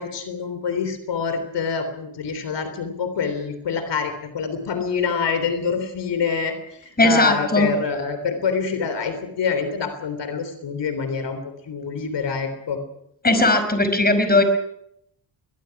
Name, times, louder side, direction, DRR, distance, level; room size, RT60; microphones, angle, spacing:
voice 1, 0.0-12.8, left 5 dB, 70° left, 9 dB, 3.6 m, -26 dB
voice 2, 7.0-7.7 13.2-14.4, left 2 dB, 20° left, 8 dB, 4.9 m, -18 dB
21.5 x 21.5 x 6.0 m, 0.74 s
cardioid pair, 100°, 43 cm